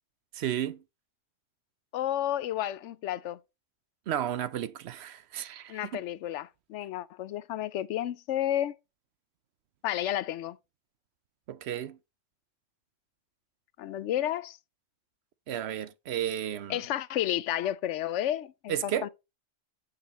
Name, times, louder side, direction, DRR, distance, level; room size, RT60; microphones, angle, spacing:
voice 1, 0.3-0.8 4.1-5.9 11.5-12.0 15.5-16.8 18.7-19.1, right 10 dB, 70° right, 0.9 m, -33 dB
voice 2, 1.9-3.4 5.7-8.8 9.8-10.6 13.8-14.6 16.7-19.1, left 12 dB, 85° left, 0.9 m, -31 dB
9.7 x 6.8 x 3.0 m
omnidirectional pair, 1.2 m